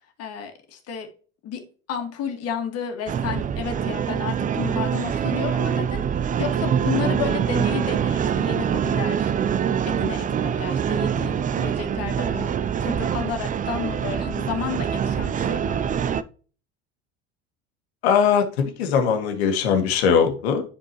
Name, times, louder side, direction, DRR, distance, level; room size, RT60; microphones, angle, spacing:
voice 1, 0.2-1.1 1.4-1.6 1.9-9.3 9.8-12.5 12.8-16.1, left 7 dB, 50° left, 5 dB, 2.0 m, -32 dB
sound 1, 3.1-16.2, right 8 dB, 25° right, 0.5 m, -24 dB
voice 2, 18.0-20.6, left 7 dB, 75° left, 5 dB, 1.7 m, -20 dB
10.5 x 4.5 x 3.0 m, 0.39 s
hypercardioid pair, 70°, 33 cm